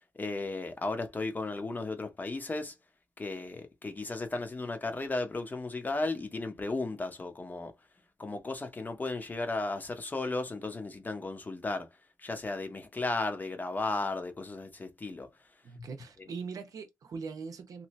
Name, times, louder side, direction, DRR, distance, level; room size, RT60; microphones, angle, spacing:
voice 1, 0.2-2.7 3.2-7.7 8.2-11.9 12.2-15.3 15.8-15.9, left 3 dB, 30° left, 0.8 m, -35 dB
voice 2, 15.6-17.9, right 5 dB, 70° right, 0.7 m, -41 dB
2.9 x 2.7 x 3.1 m
wide cardioid pair, 125°, 6 cm